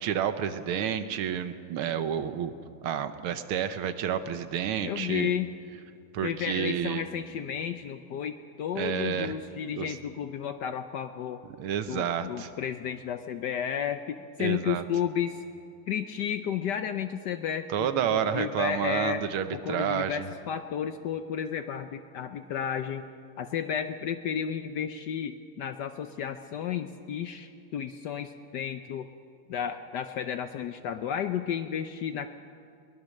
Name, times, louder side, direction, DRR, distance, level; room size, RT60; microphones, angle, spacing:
voice 1, 0.0-2.5 2.8-5.3 6.1-7.0 8.8-9.3 9.8-9.9 11.6-12.5 14.4-14.8 17.7-20.3, right 9 dB, 75° right, 10 dB, 1.8 m, -30 dB
voice 2, 4.8-5.5 6.2-11.4 11.9-15.4 15.9-19.3 19.5-23.1 23.4-29.1 29.5-32.3, left 8 dB, 70° left, 9 dB, 1.1 m, -32 dB
22.0 x 20.0 x 6.5 m, 2.4 s
omnidirectional pair, 2.4 m